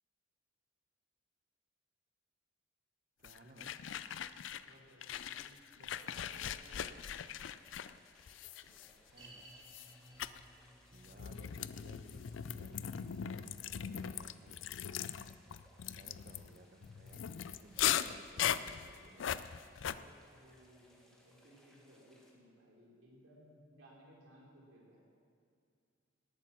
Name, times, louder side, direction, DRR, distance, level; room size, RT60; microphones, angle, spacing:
sound 1, 3.2-4.7 5.0-9.2 9.7-9.9 10.2-10.4 11.0-20.0, left 9 dB, 70° left, 0.4 m, -39 dB
voice 1, 3.2-3.8 8.9-9.7 10.9-14.5 16.0-19.3, right 1 dB, 45° right, 7 dB, 1.0 m, -60 dB
voice 2, 4.6-6.8 9.0-9.2 16.3-16.5 19.9-25.0, equal, 75° right, -4 dB, 4.5 m, -61 dB
sound 2, 6.6-22.3, equal, 5° left, 1.8 m, -68 dB
sound 3, 9.2-20.5 20.7-20.8 21.5-21.6, right 1 dB, 20° right, 2.0 m, -63 dB
18.5 x 8.9 x 6.2 m, 2.3 s
head